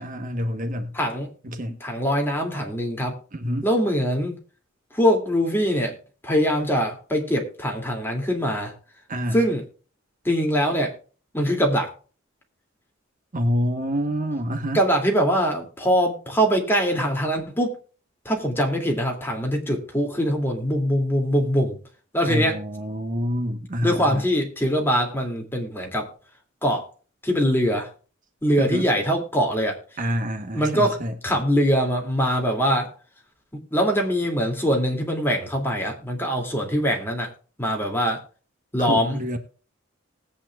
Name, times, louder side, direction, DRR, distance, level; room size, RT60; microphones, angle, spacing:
voice 1, 0.0-0.9 1.4-1.7 3.3-3.7 9.1-9.4 13.3-14.8 22.2-24.2 28.6-28.9 30.0-31.1 38.8-39.4, equal, 40° right, 1.2 m, -27 dB
voice 2, 0.9-1.3 1.8-3.2 3.6-4.4 4.9-5.9 6.2-8.7 9.3-9.6 10.2-10.9 11.3-11.9 14.7-17.7 18.2-21.8 22.1-22.5 23.8-26.1 26.6-26.9 27.2-27.9 28.4-29.8 30.5-31.0 31.2-32.9 33.5-37.3 37.6-38.2 38.7-39.2, equal, 10° left, 2.6 m, -23 dB
19.5 x 8.6 x 2.4 m
head